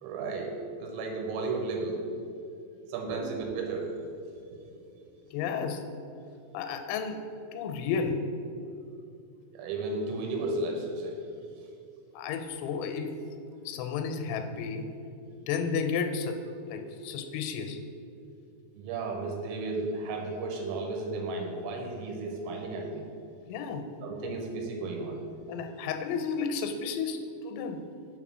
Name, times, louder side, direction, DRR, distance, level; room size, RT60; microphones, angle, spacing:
voice 1, 0.0-2.0 2.9-3.9 4.6-4.7 9.5-11.2 18.8-23.1 24.0-25.2, right 3 dB, 80° right, 1 dB, 3.1 m, -34 dB
voice 2, 5.3-5.8 6.5-7.2 7.5-8.2 12.1-13.2 13.7-14.9 15.5-16.4 16.7-17.8 23.5-23.9 25.5-27.8, left 6 dB, 85° left, 6 dB, 2.9 m, -32 dB
6.4 x 3.7 x 6.0 m, 2.5 s
omnidirectional pair, 5.2 m